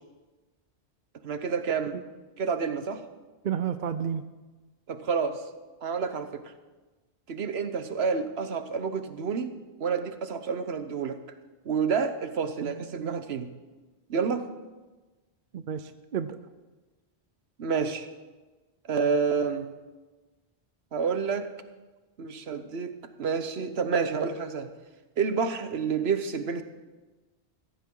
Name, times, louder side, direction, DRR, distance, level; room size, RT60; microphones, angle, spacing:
voice 1, 1.2-2.0 2.4-3.0 4.9-5.4 5.8-6.4 7.3-9.5 9.8-11.2 11.6-13.5 14.1-14.5 17.6-18.1 18.9-19.7 20.9-21.5 22.2-24.7 25.2-26.6, right 5 dB, 70° right, 9 dB, 1.2 m, -29 dB
voice 2, 3.4-4.2 12.6-13.2 15.5-16.4, right 8 dB, 55° right, 11 dB, 0.7 m, -32 dB
15.5 x 15.0 x 3.8 m, 1.2 s
omnidirectional pair, 1.1 m